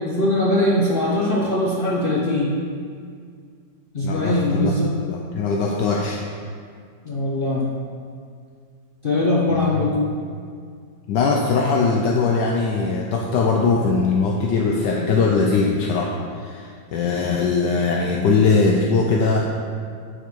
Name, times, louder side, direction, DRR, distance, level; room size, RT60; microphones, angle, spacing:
voice 1, 0.0-2.5 3.9-5.0 7.0-7.7 9.0-10.0, left 1 dB, 55° left, -4 dB, 0.5 m, -21 dB
voice 2, 4.0-4.7 5.0-6.2 9.5-9.7 11.1-19.4, left 4 dB, 75° left, -1 dB, 1.2 m, -21 dB
9.0 x 4.6 x 4.5 m, 2.1 s
omnidirectional pair, 2.1 m